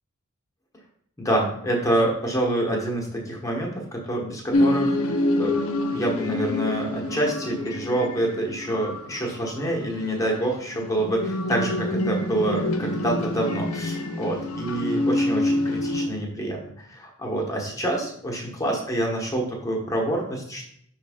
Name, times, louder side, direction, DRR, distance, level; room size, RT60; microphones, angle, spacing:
voice 1, 1.2-5.5 5.9-20.7, right 1 dB, 15° left, -1 dB, 1.1 m, -27 dB
sound 1, 4.5-16.1, left 1 dB, 80° left, 0.7 m, -26 dB
6.0 x 3.2 x 5.0 m, 0.69 s
head